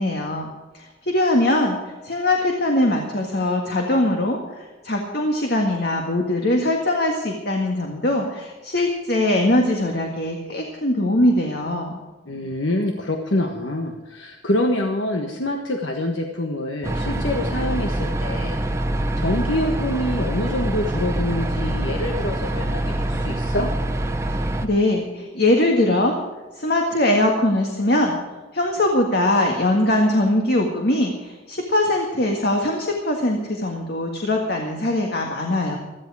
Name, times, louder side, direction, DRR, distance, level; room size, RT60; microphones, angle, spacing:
voice 1, 0.0-12.0 24.6-26.2 26.5-28.2 28.5-35.8, left 1 dB, 55° left, 1 dB, 1.8 m, -21 dB
voice 2, 12.3-18.6 19.2-23.7, left 1 dB, 75° left, 3 dB, 1.4 m, -26 dB
sound 1, 16.8-24.7, right 1 dB, 15° right, 0.9 m, -25 dB
17.0 x 13.5 x 4.9 m, 1.2 s
head